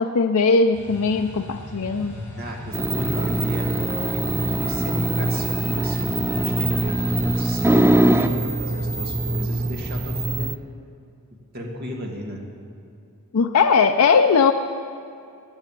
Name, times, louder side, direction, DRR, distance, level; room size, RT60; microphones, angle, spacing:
voice 1, 0.0-2.1 13.3-14.5, left 5 dB, 75° left, 5 dB, 0.5 m, -19 dB
sound 1, 0.7-7.8, left 2 dB, 10° left, 4.1 m, -38 dB
voice 2, 2.4-10.5 11.3-12.5, equal, 45° right, 0 dB, 2.1 m, -34 dB
sound 2, 2.7-10.6, right 1 dB, 10° right, 0.4 m, -22 dB
sound 3, 2.9-9.4, left 1 dB, 35° left, 2.3 m, -43 dB
14.5 x 8.4 x 8.9 m, 2.6 s
head